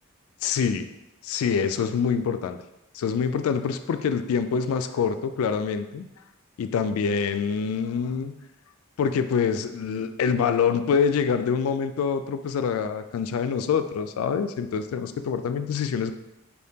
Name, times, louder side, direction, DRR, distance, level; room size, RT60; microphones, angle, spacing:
voice 1, 0.4-0.9 1.2-2.6 2.9-6.1 6.6-8.4 9.0-16.1, left 6 dB, 80° left, 9 dB, 0.3 m, -25 dB
4.1 x 3.5 x 2.8 m, 0.89 s
head